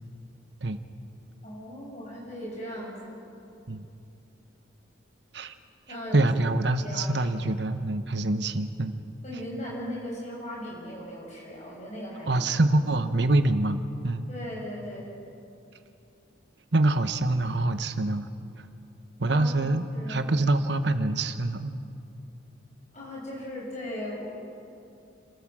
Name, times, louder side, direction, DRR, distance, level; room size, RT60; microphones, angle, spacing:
voice 1, 1.4-3.2 5.9-6.2 6.8-7.3 9.2-12.4 14.3-15.1 19.3-20.2 22.9-24.3, equal, 35° left, -3 dB, 6.7 m, -38 dB
voice 2, 6.1-8.9 12.3-14.2 16.7-18.3 19.2-21.8, right 2 dB, 60° right, 9 dB, 1.1 m, -25 dB
29.5 x 13.5 x 7.6 m, 2.7 s
head